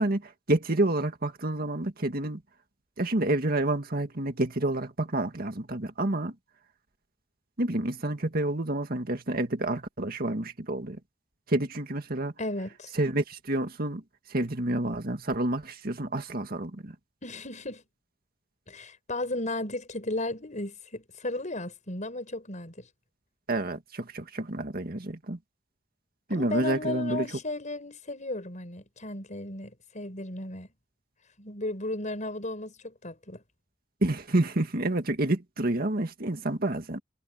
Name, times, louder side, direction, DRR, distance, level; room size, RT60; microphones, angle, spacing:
voice 1, 0.0-2.4 3.0-6.3 7.6-11.0 11.5-12.3 13.0-14.0 14.3-17.0 23.5-25.4 26.3-27.3 34.0-37.0, right 1 dB, 55° right, 2.0 m, -29 dB
voice 2, 12.4-12.9 17.2-17.8 18.7-22.9 26.3-30.7 31.4-33.4, left 2 dB, 40° left, 6.3 m, -35 dB
head